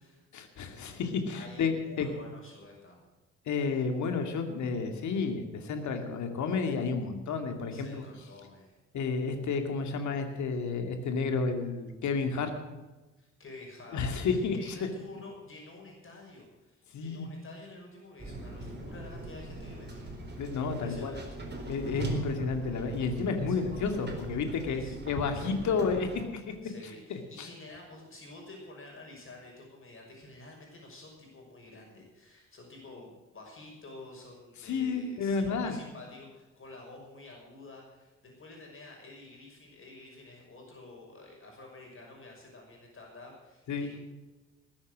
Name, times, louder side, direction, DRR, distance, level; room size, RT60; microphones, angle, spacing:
voice 1, 0.3-2.1 3.5-8.0 8.9-12.5 13.9-14.9 16.9-17.3 20.4-21.1 21.7-26.5 27.1-27.5 34.6-35.8 43.7-43.9, left 4 dB, 55° left, 6 dB, 2.4 m, -31 dB
voice 2, 1.3-3.1 7.7-8.8 13.2-21.3 22.1-22.3 23.5-23.7 24.7-25.8 26.6-44.0, left 2 dB, 35° left, 0 dB, 6.0 m, -50 dB
sound 1, 18.2-26.3, right 2 dB, 30° right, 4.2 m, -40 dB
20.0 x 8.8 x 6.4 m, 1.1 s
figure-of-eight pair, 45°, 34 cm